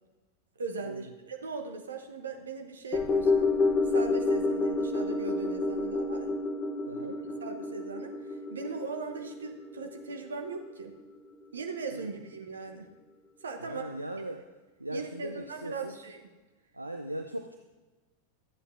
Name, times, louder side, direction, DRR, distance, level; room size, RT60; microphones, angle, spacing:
voice 1, 0.6-3.5 3.9-6.4 7.4-10.9 11.5-12.9 13.4-14.0 14.9-16.3, right 4 dB, 70° right, 4 dB, 1.0 m, -39 dB
sound 1, 2.9-11.4 11.7-11.8, left 3 dB, 20° left, 0.9 m, -29 dB
voice 2, 13.6-14.4 14.8-15.9 16.7-17.6, right 1 dB, 85° right, 5 dB, 0.5 m, -38 dB
13.0 x 8.4 x 2.7 m, 1.2 s
figure-of-eight pair, 90°, 0 cm